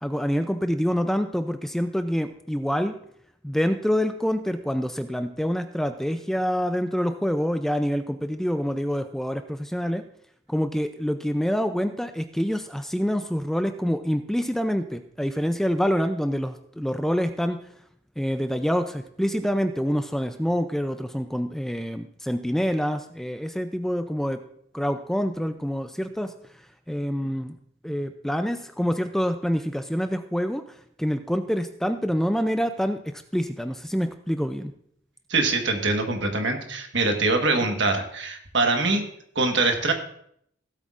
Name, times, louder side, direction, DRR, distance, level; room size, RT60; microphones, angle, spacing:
voice 1, 0.0-3.0 3.4-10.0 10.5-17.6 18.2-24.4 24.7-26.3 26.9-27.6 27.8-30.6 31.0-34.7, equal, ahead, 8 dB, 0.4 m, -26 dB
voice 2, 35.3-39.0 39.3-39.9, right 3 dB, 65° right, 4 dB, 1.4 m, -23 dB
16.5 x 8.1 x 2.5 m, 0.69 s
head